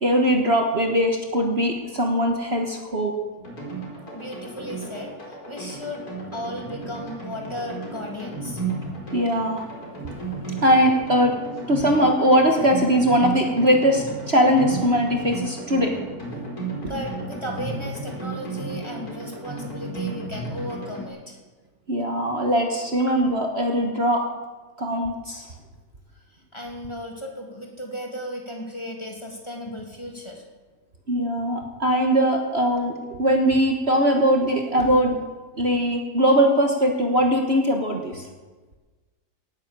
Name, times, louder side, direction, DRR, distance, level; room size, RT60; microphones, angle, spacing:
voice 1, 0.0-3.1 9.1-9.7 10.6-11.3 11.7-15.9 21.9-24.2 24.8-25.5 31.1-35.2 35.6-38.3, equal, 40° right, 2 dB, 1.7 m, -21 dB
sound 1, 3.4-21.1, right 3 dB, 65° left, 5.1 m, -34 dB
voice 2, 4.1-6.1 6.3-8.6 16.8-21.4 23.1-23.2 26.5-30.4, equal, 15° left, 0 dB, 2.9 m, -35 dB
18.0 x 10.0 x 7.5 m, 1.3 s
omnidirectional pair, 1.7 m